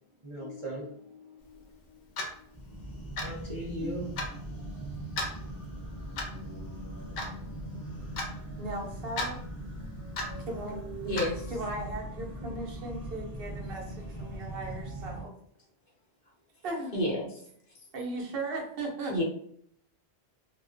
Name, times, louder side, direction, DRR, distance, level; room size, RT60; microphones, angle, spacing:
voice 1, 0.2-2.0 2.3-2.5 3.2-5.3 7.7-7.9 8.2-8.3 10.7-11.3 12.4-12.5, right 1 dB, 40° right, -7 dB, 0.4 m, -41 dB
Clock, 2.2-2.4 3.2-3.4 4.2-4.3 5.2-5.3 6.2-6.4 7.2-7.3 8.2-8.3 9.2-9.3 10.2-10.4 11.2-11.3, left 2 dB, 90° left, 0.9 m, -33 dB
sound 1, 2.5-15.2, right 1 dB, 20° left, 0.8 m, -40 dB
voice 2, 8.6-9.4 10.5-10.8 11.5-15.3 16.6-16.9 17.9-19.2, right 2 dB, 65° right, -1 dB, 0.8 m, -37 dB
voice 3, 11.0-11.4 16.9-17.3 19.1-19.2, left 1 dB, 60° left, -5 dB, 1.0 m, -29 dB
2.4 x 2.1 x 2.4 m, 0.65 s
omnidirectional pair, 1.1 m